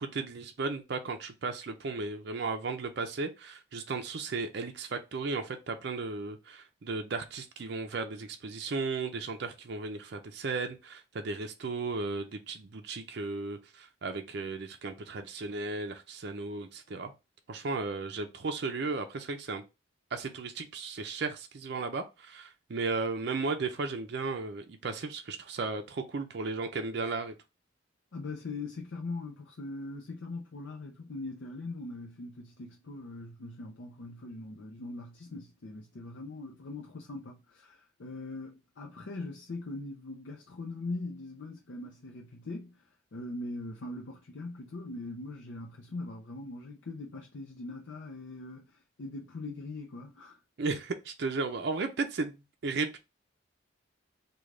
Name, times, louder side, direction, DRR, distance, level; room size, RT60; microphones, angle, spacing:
voice 1, 0.0-17.1 17.5-19.6 20.1-27.3 50.6-52.4 52.6-53.0, right 3 dB, 55° right, 0.5 m, -35 dB
voice 2, 28.1-42.8 43.1-50.4, left 2 dB, 70° left, 0.5 m, -41 dB
3.2 x 2.3 x 3.7 m
head